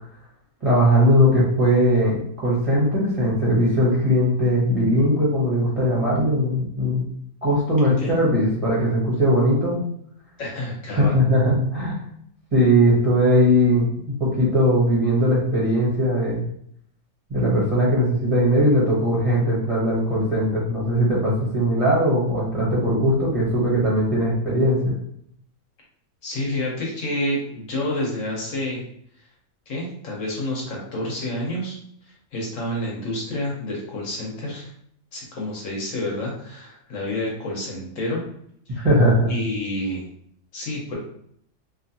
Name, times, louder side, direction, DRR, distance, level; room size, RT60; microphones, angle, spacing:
voice 1, 0.6-7.0 7.4-9.8 11.0-11.9 12.5-13.9 14.2-16.4 17.3-24.9 38.8-39.3, equal, 30° right, -8 dB, 0.7 m, -19 dB
voice 2, 7.8-8.2 10.4-11.1 26.2-28.8 29.7-31.8 32.3-34.7 35.1-38.2 38.7-38.9 39.3-40.1 40.5-41.0, left 1 dB, 65° left, -2 dB, 1.1 m, -29 dB
2.8 x 2.4 x 2.6 m, 0.67 s
omnidirectional pair, 1.5 m